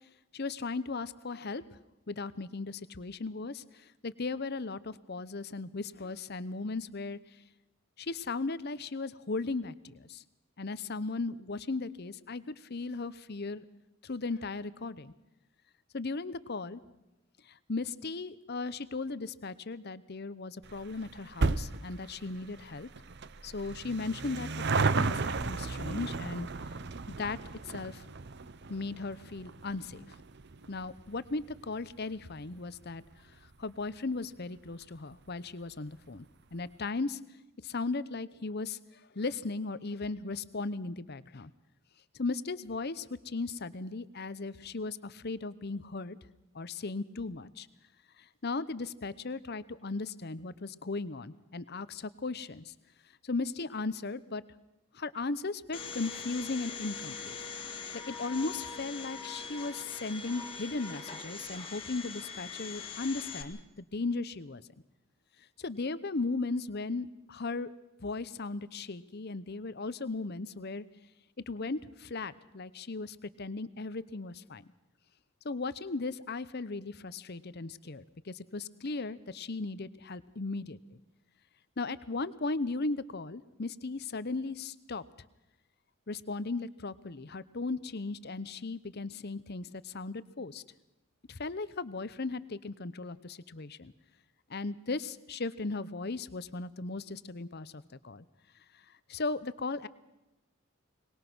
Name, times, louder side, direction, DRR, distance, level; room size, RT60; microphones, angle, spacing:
voice 1, 0.3-1.6 2.1-7.2 8.0-10.2 10.6-13.6 14.0-15.1 15.9-16.8 17.4-22.9 23.4-26.5 27.1-27.4 27.6-28.1 28.7-30.1 30.7-36.3 36.5-37.2 37.6-41.5 42.1-46.2 46.5-47.7 48.2-52.7 53.2-54.4 54.9-57.4 58.1-64.6 65.6-67.7 68.0-70.8 71.5-74.7 75.4-81.0 81.8-85.0 86.1-90.6 91.3-93.9 94.5-98.3 98.7-98.8 99.1-99.9, left 3 dB, 45° left, 16 dB, 0.8 m, -37 dB
sound 1, 20.6-33.4 33.7-33.8 34.7-34.8 35.0-35.1 35.3-35.4, right 4 dB, 50° right, 0.7 m, -35 dB
Domestic sounds home sounds, 55.7-63.4, left 5 dB, 25° left, 1.9 m, -42 dB
23.5 x 20.0 x 6.1 m, 0.97 s
head